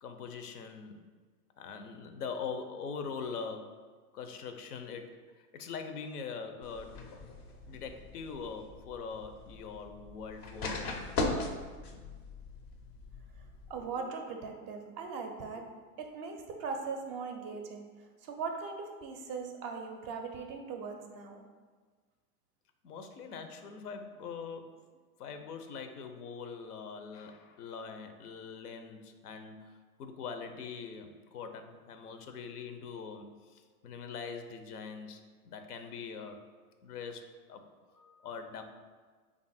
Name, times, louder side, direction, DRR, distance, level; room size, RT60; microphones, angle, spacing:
voice 1, 0.0-1.0 1.6-3.8 4.1-5.2 5.5-7.0 7.6-10.9 22.8-24.8 25.2-36.4 36.8-37.6 37.9-38.6, left 5 dB, 85° left, 7 dB, 0.6 m, -43 dB
sound 1, 6.6-13.8, left 2 dB, 30° left, 0.4 m, -39 dB
voice 2, 13.7-15.7 16.0-17.9 18.2-21.5, right 5 dB, 35° right, 3 dB, 0.4 m, -39 dB
3.4 x 2.5 x 4.0 m, 1.5 s
hypercardioid pair, 105°, 45 cm